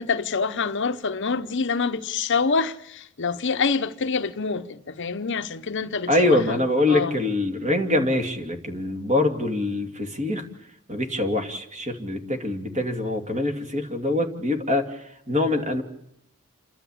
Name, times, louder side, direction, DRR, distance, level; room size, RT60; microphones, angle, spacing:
voice 1, 0.0-6.6 6.9-7.1, left 5 dB, 55° left, 0.9 m, -26 dB
voice 2, 6.1-10.5 10.9-15.8, left 2 dB, 30° right, 2.5 m, -24 dB
28.5 x 12.0 x 8.6 m
head